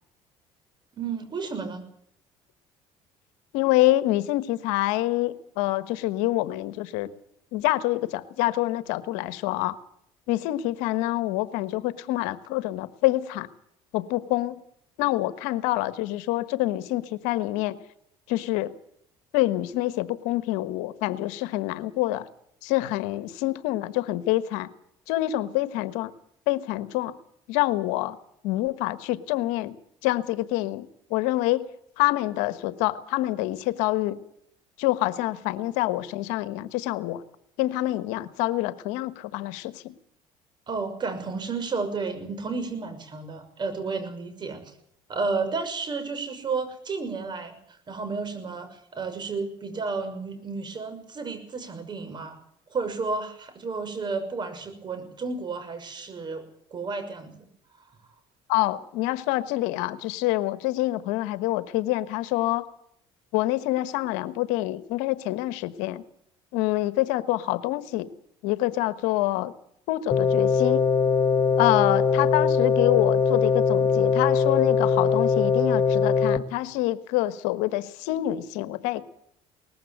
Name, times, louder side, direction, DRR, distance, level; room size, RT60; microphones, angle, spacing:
voice 1, 0.9-1.8 40.7-44.6 45.1-47.6 47.9-52.4 52.7-56.4 56.7-57.5, right 4 dB, 40° right, 9 dB, 6.0 m, -32 dB
voice 2, 3.5-7.1 7.5-9.7 10.3-13.5 13.9-14.6 15.0-17.8 18.3-18.7 19.3-22.3 22.6-24.7 25.1-26.1 26.5-27.1 27.5-28.2 28.4-29.7 30.0-31.6 32.0-34.2 34.8-37.2 37.6-39.9 58.5-62.7 63.3-66.0 66.5-68.1 68.4-69.5 69.9-70.8 71.6-79.0, left 16 dB, 85° left, 14 dB, 1.3 m, -26 dB
sound 1, 70.1-76.4, left 5 dB, 30° left, 1.3 m, -21 dB
19.5 x 15.0 x 9.1 m, 0.73 s
supercardioid pair, 95°, 12 cm